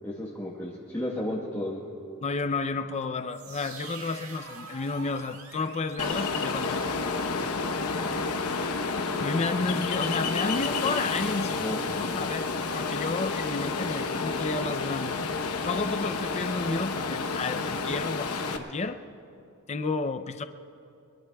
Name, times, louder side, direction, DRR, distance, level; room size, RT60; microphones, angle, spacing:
voice 1, 0.0-1.8 11.6-11.8, left 1 dB, 10° left, -5 dB, 1.2 m, -33 dB
voice 2, 2.2-6.9 9.2-11.7 12.0-15.2 15.6-19.0 19.7-20.4, left 3 dB, 30° left, 8 dB, 0.4 m, -31 dB
sound 1, 3.3-7.1, right 4 dB, 65° right, 1.8 m, -46 dB
Ocean, 6.0-18.6, left 4 dB, 80° left, 0.9 m, -30 dB
23.0 x 22.5 x 2.3 m, 2.6 s
head